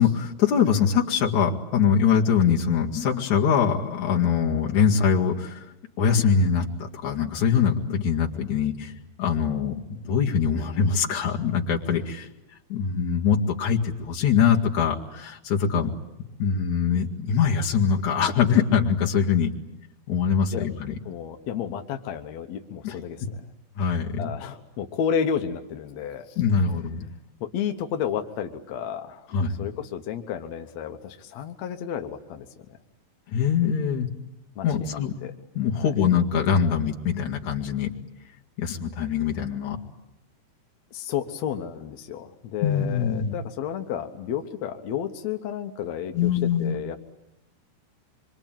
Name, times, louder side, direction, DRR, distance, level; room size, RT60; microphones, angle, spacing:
voice 1, 0.0-5.6 6.0-8.9 9.2-12.3 12.7-15.9 16.4-19.5 20.1-20.9 22.8-22.9 23.8-24.3 26.4-27.0 29.3-29.6 33.3-34.1 34.6-35.1 35.5-37.9 38.6-39.8 42.6-43.3 46.1-46.7, left 7 dB, 55° left, 0 dB, 3.1 m, -23 dB
voice 2, 21.0-23.4 24.2-26.3 27.4-29.3 29.6-32.5 34.5-35.3 35.7-35.9 40.9-47.0, left 8 dB, 70° left, 5 dB, 1.7 m, -31 dB
26.0 x 24.5 x 9.1 m, 0.91 s
omnidirectional pair, 4.6 m